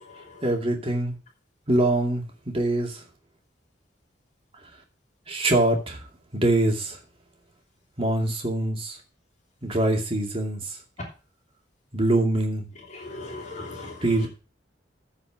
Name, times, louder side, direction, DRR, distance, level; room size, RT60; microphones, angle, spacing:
voice 1, 0.4-1.1 1.7-2.9 5.3-6.0 6.4-6.9 8.0-8.9 9.6-10.6 11.9-12.7 14.0-14.3, right 1 dB, 30° right, 2 dB, 2.4 m, -23 dB
voice 2, 12.9-13.9, left 2 dB, 40° left, -1 dB, 3.1 m, -37 dB
14.0 x 5.1 x 6.1 m, 0.34 s
head